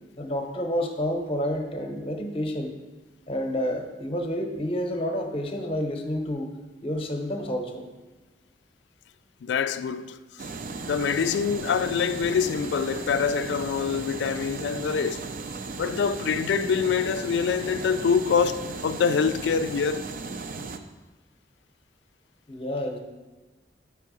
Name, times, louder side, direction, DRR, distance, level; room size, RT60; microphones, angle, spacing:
voice 1, 0.2-2.7 3.3-6.5 6.8-7.8 22.5-23.0, equal, 35° left, 0.8 m, -29 dB
voice 2, 9.4-10.5 10.8-15.3 15.8-20.1, left 6 dB, 80° left, 0.3 m, -25 dB
sound 1, 10.4-20.8, right 4 dB, 50° right, 0.4 m, -36 dB
6.0 x 4.5 x 6.1 m
head